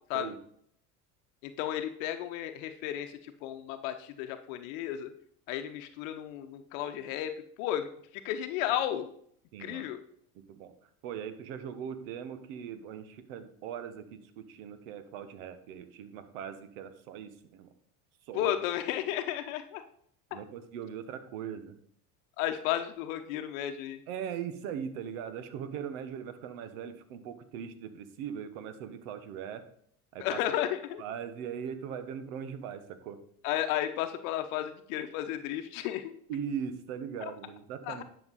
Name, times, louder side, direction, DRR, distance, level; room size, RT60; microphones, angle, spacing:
voice 1, 1.4-5.1 5.5-7.3 7.6-9.1 9.6-10.0 18.3-19.8 22.4-24.0 30.2-31.0 33.4-36.1 37.2-37.3 37.9-38.0, left 11 dB, 65° left, 9 dB, 0.9 m, -33 dB
voice 2, 9.5-9.8 10.5-10.7 11.0-17.7 18.3-18.5 20.3-21.8 24.1-29.6 30.1-30.4 31.0-33.2 36.3-38.0, right 8 dB, 70° right, 10 dB, 1.3 m, -40 dB
11.0 x 5.9 x 4.2 m, 0.64 s
hypercardioid pair, 80°, 44 cm